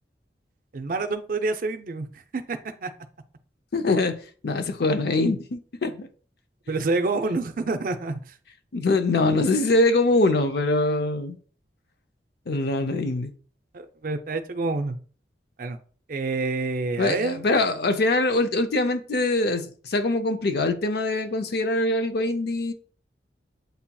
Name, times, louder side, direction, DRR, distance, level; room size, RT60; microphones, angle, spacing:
voice 1, 0.7-2.1 2.3-2.9 6.7-8.2 13.7-15.0 15.6-15.8 16.1-17.4, right 3 dB, 50° right, 0.5 m, -27 dB
voice 2, 3.7-4.2 4.4-6.1 8.7-11.4 12.5-13.3 17.0-22.7, left 2 dB, 65° left, 0.5 m, -23 dB
8.0 x 2.8 x 2.2 m
head